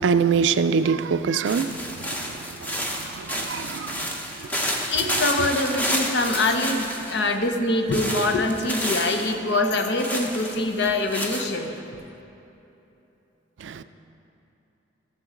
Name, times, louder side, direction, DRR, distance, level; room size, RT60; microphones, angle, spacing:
voice 1, 0.0-1.8 2.1-4.1 4.7-5.2 13.6-13.8, right 6 dB, 85° right, 0.4 m, -25 dB
sound 1, 1.4-7.3 7.9-9.3 10.0-11.5, equal, 10° left, 0.7 m, -30 dB
voice 2, 4.9-11.7, left 2 dB, 65° left, 0.7 m, -24 dB
14.0 x 6.8 x 3.8 m
head